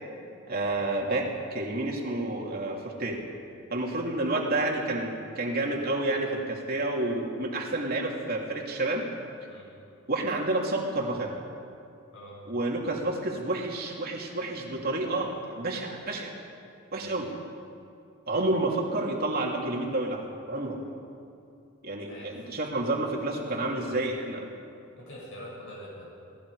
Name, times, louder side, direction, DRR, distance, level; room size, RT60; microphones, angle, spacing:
voice 1, 0.5-3.2 3.7-9.1 10.1-11.3 12.5-16.3 16.9-17.3 18.3-20.8 21.8-24.5, right 2 dB, 45° right, -1 dB, 3.0 m, -29 dB
voice 2, 23.3-24.0 25.0-26.1, equal, 60° left, -5 dB, 6.9 m, -45 dB
28.5 x 19.0 x 5.0 m, 2.5 s
head